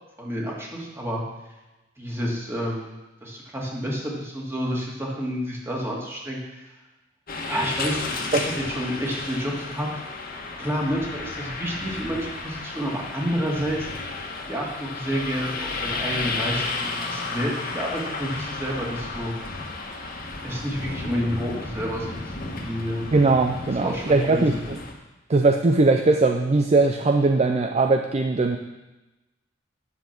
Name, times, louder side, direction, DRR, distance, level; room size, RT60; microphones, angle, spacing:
voice 1, 0.2-1.2 2.0-6.6 7.5-8.4 8.7-9.9 10.6-13.9 14.5-19.3 20.4-22.2 22.6-23.1 23.7-24.6, equal, 15° right, -3 dB, 2.2 m, -29 dB
sound 1, 7.3-24.9, left 3 dB, 50° left, 1.5 m, -33 dB
voice 2, 23.1-24.8 25.3-28.6, right 3 dB, 35° right, 5 dB, 0.5 m, -20 dB
9.9 x 7.1 x 6.0 m, 1.1 s
head